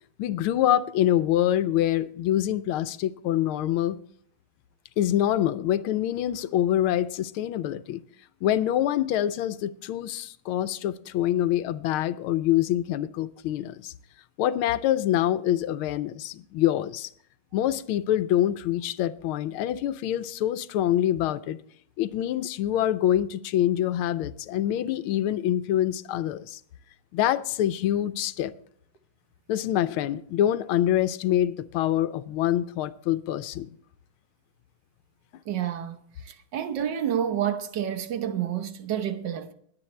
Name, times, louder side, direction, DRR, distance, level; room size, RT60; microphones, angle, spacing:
voice 1, 0.2-4.0 5.0-8.0 8.4-13.9 14.4-17.1 17.5-21.6 22.0-26.6 27.1-28.5 29.5-33.7, left 12 dB, 90° left, 1.5 m, -25 dB
voice 2, 35.5-36.0 36.2-39.5, right 9 dB, 65° right, 1.5 m, -29 dB
20.5 x 8.4 x 3.3 m
omnidirectional pair, 2.3 m